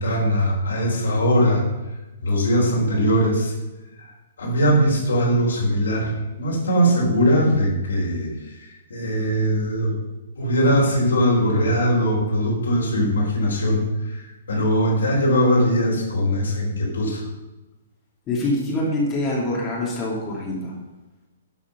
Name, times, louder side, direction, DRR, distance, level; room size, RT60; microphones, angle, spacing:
voice 1, 0.0-1.6 2.2-3.5 4.4-10.0 10.4-17.3, equal, 65° left, -1 dB, 4.0 m, -21 dB
voice 2, 18.3-20.7, left 1 dB, 20° left, -4 dB, 2.7 m, -25 dB
12.5 x 7.1 x 5.7 m, 1.1 s
figure-of-eight pair, 120°, 0 cm